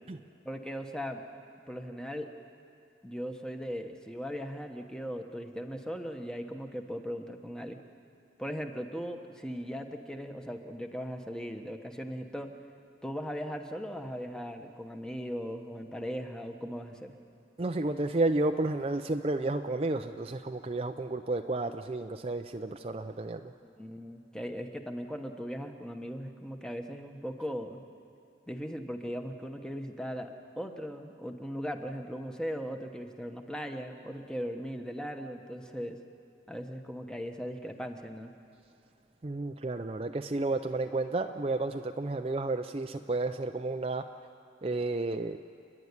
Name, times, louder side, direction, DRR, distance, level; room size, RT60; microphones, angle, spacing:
voice 1, 0.4-1.2 1.7-2.3 3.0-7.8 8.4-12.6 13.0-17.1 23.6-27.8 28.5-30.3 30.6-36.0 36.5-38.3, equal, 5° left, 5 dB, 1.1 m, -38 dB
voice 2, 17.6-23.5 39.2-44.0 44.6-45.4, right 2 dB, 30° right, 6 dB, 0.5 m, -31 dB
29.5 x 11.0 x 9.7 m, 2.7 s
head